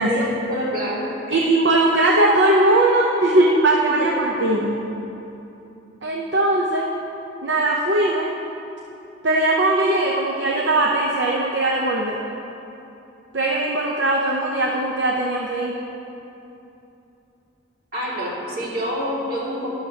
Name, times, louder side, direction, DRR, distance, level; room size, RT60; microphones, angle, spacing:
voice 1, 0.1-1.4 4.0-4.2 17.9-19.7, equal, 50° right, -5 dB, 2.3 m, -27 dB
voice 2, 1.3-4.8 6.0-6.9 7.4-8.3 9.2-12.2 13.3-15.7, right 2 dB, 65° right, -1 dB, 0.7 m, -19 dB
12.0 x 11.0 x 2.8 m, 2.9 s
head